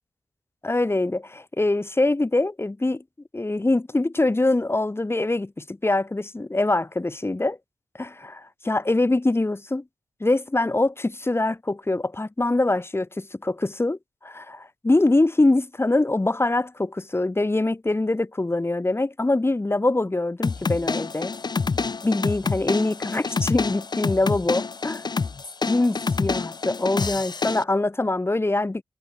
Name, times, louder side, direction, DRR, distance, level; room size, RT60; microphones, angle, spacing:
voice 1, 0.6-3.0 3.3-7.6 8.0-9.8 10.2-21.3 22.0-25.0 25.7-28.8, left 2 dB, 25° left, 1.3 m, -24 dB
sound 1, 20.4-27.6, left 4 dB, 45° left, 0.8 m, -27 dB
cardioid pair, 45°, 10 cm